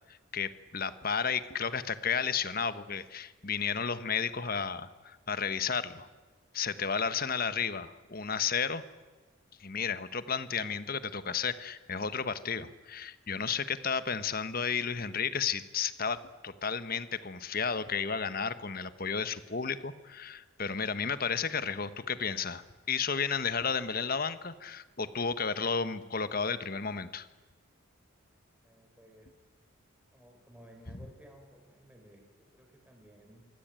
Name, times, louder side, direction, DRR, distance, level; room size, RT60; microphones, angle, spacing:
voice 1, 0.1-6.1 6.5-8.8 9.6-22.6 22.9-27.3, left 6 dB, 45° left, 13 dB, 1.2 m, -33 dB
voice 2, 28.6-29.3 30.1-33.4, right 1 dB, 5° right, 2 dB, 4.1 m, -56 dB
26.0 x 23.0 x 9.0 m, 1.3 s
head